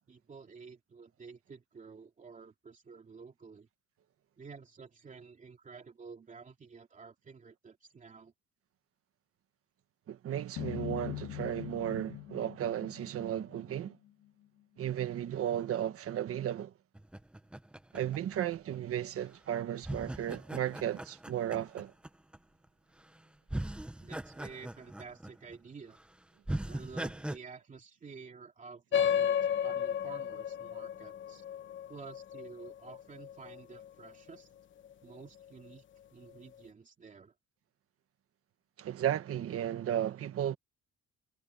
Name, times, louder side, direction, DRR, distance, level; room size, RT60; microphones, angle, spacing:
voice 1, 0.1-3.7 4.4-8.3 24.0-26.0 26.6-31.4 31.9-34.5 35.0-35.8 36.1-37.3, right 5 dB, 25° right, 2.8 m, -51 dB
voice 2, 10.1-14.0 14.8-16.7 17.9-21.9 38.8-40.6, right 11 dB, 50° right, 1.4 m, -34 dB
sound 1, 10.6-13.8, left 15 dB, 70° left, 1.6 m, -42 dB
sound 2, 16.9-18.9 19.8-22.4 23.0-23.2 23.5-25.6 25.9-26.0 26.5-27.4, right 1 dB, 5° right, 0.5 m, -40 dB
sound 3, 28.9-33.9, left 9 dB, 40° left, 0.9 m, -33 dB
cardioid pair, 170°, 30 cm